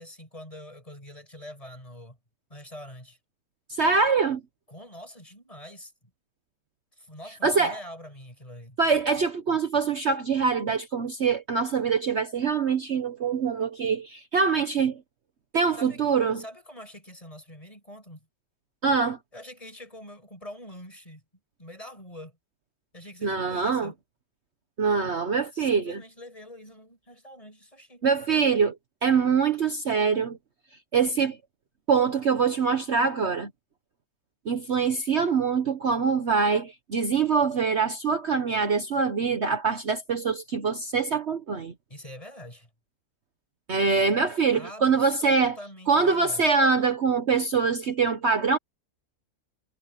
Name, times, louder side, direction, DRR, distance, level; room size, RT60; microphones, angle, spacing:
voice 1, 0.0-2.2 2.5-3.2 4.7-5.9 6.9-8.8 15.7-16.0 16.3-18.3 19.3-21.2 21.6-22.4 22.9-23.9 25.5-28.0 41.9-42.7 44.5-46.5, left 1 dB, 20° left, 6.2 m, -45 dB
voice 2, 3.8-4.4 7.4-7.8 8.8-15.0 15.5-16.4 18.8-19.2 23.2-23.9 24.8-26.0 28.0-28.8 29.0-30.4 30.9-31.4 31.9-33.5 34.5-41.7 43.7-45.6 45.9-48.6, right 5 dB, 50° right, 1.3 m, -24 dB
omnidirectional pair, 1.6 m